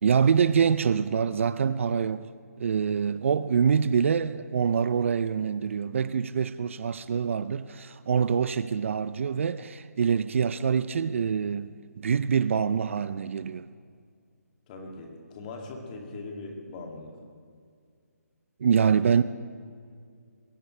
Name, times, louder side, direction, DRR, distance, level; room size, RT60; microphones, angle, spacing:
voice 1, 0.0-2.3 2.6-13.7 18.6-19.2, right 7 dB, 50° right, 0.5 m, -25 dB
voice 2, 14.7-17.1, left 3 dB, 30° left, 2.5 m, -40 dB
21.5 x 16.5 x 3.3 m
hypercardioid pair, 155°, 9 cm